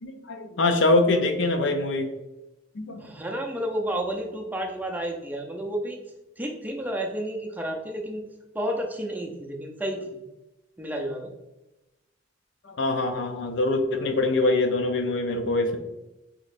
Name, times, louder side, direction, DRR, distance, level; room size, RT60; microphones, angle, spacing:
voice 1, 0.0-2.1 2.8-3.1 12.6-15.8, left 2 dB, 70° left, 6 dB, 0.5 m, -24 dB
voice 2, 3.0-6.0 6.4-8.2 8.5-10.0 10.8-11.3, right 1 dB, 10° right, 1 dB, 0.6 m, -31 dB
6.2 x 3.0 x 2.5 m, 0.99 s
head